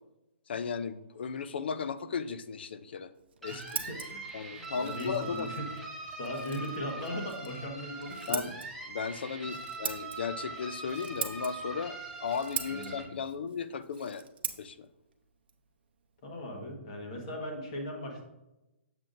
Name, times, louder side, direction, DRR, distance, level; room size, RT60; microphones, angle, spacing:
voice 1, 0.5-3.1 3.4-3.6 3.9-4.0 4.3-5.5 8.3-8.5 8.9-12.0 12.2-14.3 14.6-14.9, left 6 dB, 50° left, 14 dB, 0.4 m, -35 dB
Scissors, 3.1-16.7, right 7 dB, 50° right, 0.7 m, -43 dB
sound 1, 3.4-13.0, right 3 dB, ahead, 0.6 m, -42 dB
voice 2, 3.5-4.2 4.6-5.7 6.2-8.5 12.7-13.2 16.2-18.2, left 1 dB, 30° left, 1 dB, 1.3 m, -39 dB
7.6 x 7.2 x 2.5 m, 0.95 s
hypercardioid pair, 180°, 7 cm